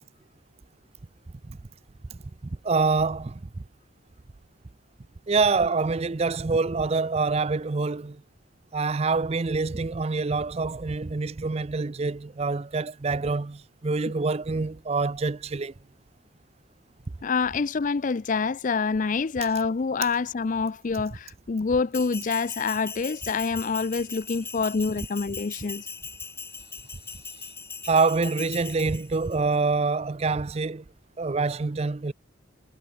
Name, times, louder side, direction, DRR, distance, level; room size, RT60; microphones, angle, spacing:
voice 1, 2.6-3.4 5.3-8.2 8.7-15.7 27.8-30.8 31.2-32.1, right 4 dB, 30° right, 0.5 m, -26 dB
voice 2, 17.2-25.9, left 4 dB, 40° left, 0.4 m, -26 dB
Bell, 21.9-29.4, left 5 dB, 10° left, 1.5 m, -40 dB
head